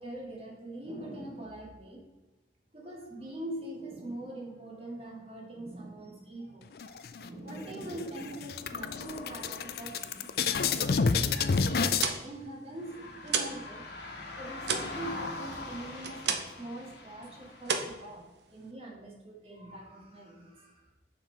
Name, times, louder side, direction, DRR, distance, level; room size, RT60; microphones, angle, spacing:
voice 1, 0.0-2.0 2.7-10.3 10.6-11.4 11.7-13.9 14.4-20.9, right 1 dB, 35° right, -1 dB, 1.9 m, -43 dB
sound 1, 6.8-7.5 7.9-8.0 8.3-12.1, left 5 dB, 55° left, 0.4 m, -29 dB
sound 2, 12.0-13.7 14.0-16.7 17.0-17.3 17.6-18.7, right 5 dB, 75° right, 0.9 m, -33 dB
Passing Car (Wet road), 12.8-17.9, left 2 dB, 75° left, 1.5 m, -42 dB
6.5 x 5.7 x 4.4 m, 1.2 s
head